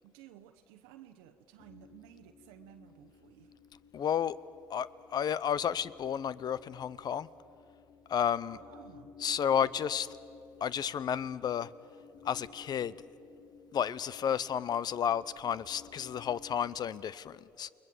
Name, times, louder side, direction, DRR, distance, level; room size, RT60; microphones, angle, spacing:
voice 1, 0.0-3.5 8.2-9.2, right 11 dB, 80° right, 6 dB, 0.9 m, -55 dB
sound 1, 1.6-16.7, left 5 dB, 70° left, 2.5 m, -57 dB
voice 2, 3.9-4.4 4.7-7.3 8.1-8.6 9.2-10.1 10.6-11.7 12.2-12.9 13.7-17.7, left 8 dB, 50° left, 19 dB, 0.7 m, -32 dB
29.0 x 20.5 x 7.7 m, 2.6 s
hypercardioid pair, 65°, 9 cm